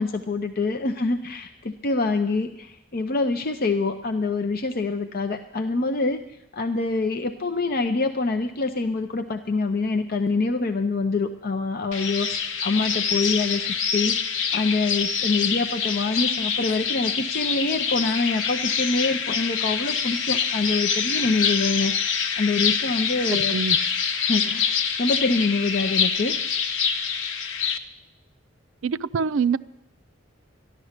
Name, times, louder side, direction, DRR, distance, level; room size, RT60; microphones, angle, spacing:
voice 1, 0.0-6.2 6.5-13.6 13.9-22.1 22.4-23.6 24.3-26.3, left 3 dB, 50° left, 6 dB, 0.6 m, -25 dB
sound 1, 11.9-27.8, left 6 dB, 80° left, 0.9 m, -25 dB
voice 2, 23.3-23.8 28.8-29.6, right 5 dB, 80° right, 14 dB, 0.4 m, -25 dB
13.5 x 11.5 x 6.6 m, 0.91 s
head